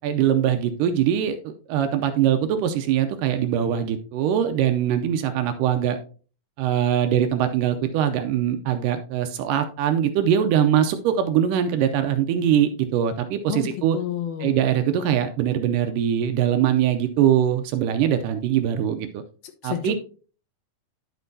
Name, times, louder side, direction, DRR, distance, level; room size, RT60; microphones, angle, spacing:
voice 1, 0.0-6.0 6.6-14.0 14.4-19.2 19.6-19.9, right 9 dB, 80° right, 8 dB, 2.0 m, -22 dB
voice 2, 13.5-14.5 19.6-19.9, left 9 dB, 85° left, 5 dB, 2.9 m, -30 dB
10.5 x 6.4 x 2.7 m, 0.39 s
omnidirectional pair, 4.2 m